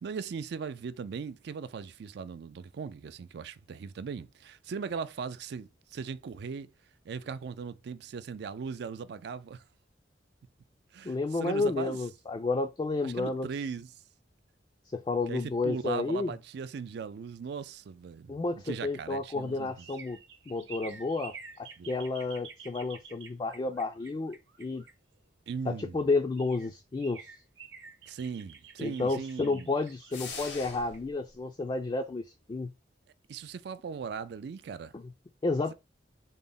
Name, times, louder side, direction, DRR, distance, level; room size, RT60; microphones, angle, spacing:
voice 1, 0.0-6.7 7.1-9.6 10.9-12.0 13.0-13.9 15.3-18.4 18.6-19.7 21.8-22.0 25.5-26.0 28.1-29.7 33.3-34.9, right 5 dB, 65° right, 0.4 m, -38 dB
voice 2, 11.0-13.5 14.9-16.3 18.3-20.2 20.5-24.8 25.7-27.3 28.8-32.7 34.9-35.0 35.4-35.7, left 3 dB, 25° left, 0.3 m, -31 dB
sound 1, 18.9-25.5 26.1-26.2 26.4-32.1 32.5-32.6, right 6 dB, 85° right, 0.9 m, -50 dB
sound 2, 30.1-31.1, left 4 dB, 90° left, 1.0 m, -41 dB
3.8 x 2.1 x 3.8 m
head